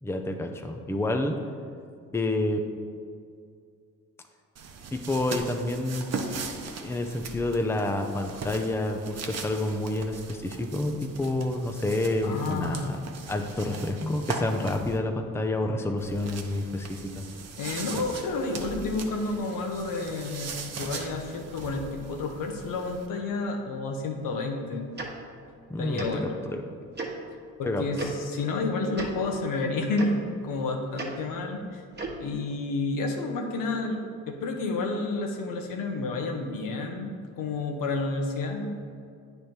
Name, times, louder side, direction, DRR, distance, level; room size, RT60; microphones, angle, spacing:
voice 1, 0.0-1.4 2.1-2.6 4.9-6.1 6.8-13.0 13.3-17.3 25.7-26.1 26.5-26.6 27.6-28.1, left 2 dB, 10° left, 4 dB, 0.6 m, -29 dB
sound 1, 4.6-15.0 16.0-23.1, right 4 dB, 50° right, 0.8 m, -39 dB
voice 2, 12.2-13.0 17.6-24.9 25.8-26.4 27.6-31.8 32.2-37.1 37.4-38.7, left 3 dB, 70° left, 2 dB, 1.0 m, -30 dB
Tick-tock, 25.0-25.1 26.0-26.1 27.0-27.1 28.0-28.1 28.9-29.1 30.0-30.1 31.0-31.1 31.9-32.2, right 3 dB, 30° right, 1.3 m, -34 dB
9.0 x 3.4 x 4.4 m, 2.3 s
supercardioid pair, 65°, 34 cm